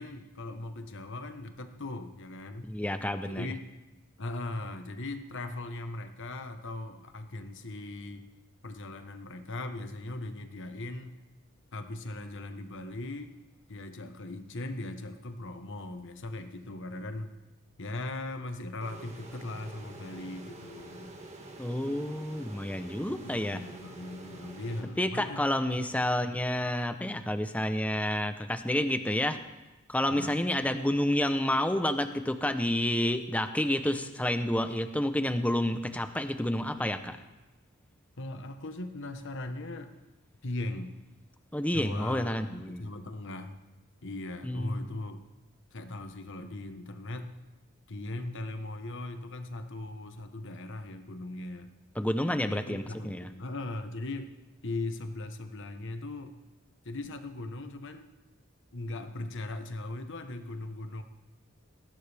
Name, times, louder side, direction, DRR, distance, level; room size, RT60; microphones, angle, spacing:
voice 1, 0.0-2.7 3.2-3.6 4.2-8.3 8.6-11.2 11.7-13.3 13.7-17.3 17.8-21.2 23.1-26.1 30.1-30.4 38.2-39.9 40.4-40.9 41.7-43.6 44.0-45.2 45.7-47.3 47.9-51.7 52.5-54.3 54.6-56.3 56.8-58.1 58.7-61.0, left 2 dB, 60° left, 7 dB, 1.2 m, -39 dB
voice 2, 2.6-3.5 21.6-23.6 25.0-29.4 29.9-37.2 41.5-42.9 44.4-45.0 52.0-53.3, left 1 dB, 5° left, 9 dB, 0.8 m, -29 dB
sound 1, 18.8-25.5, right 2 dB, 35° right, 1.9 m, -47 dB
19.5 x 16.0 x 3.5 m, 1.1 s
head